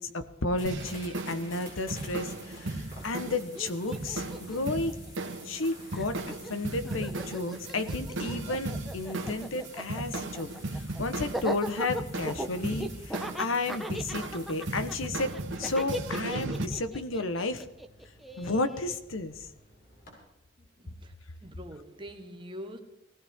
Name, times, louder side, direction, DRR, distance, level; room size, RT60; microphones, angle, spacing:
voice 1, 0.0-5.0 5.4-15.3 15.6-17.7 18.4-19.5, left 2 dB, 85° left, 1.2 m, -32 dB
sound 1, 0.5-20.2, left 1 dB, 45° left, 6.7 m, -52 dB
sound 2, 0.7-16.7, right 2 dB, 70° right, 1.5 m, -37 dB
Laughter, 3.0-3.1 3.3-5.6 5.9-18.9, equal, ahead, 0.8 m, -39 dB
voice 2, 20.6-21.1 21.4-22.8, equal, 25° right, 1.3 m, -44 dB
20.5 x 16.5 x 3.7 m
head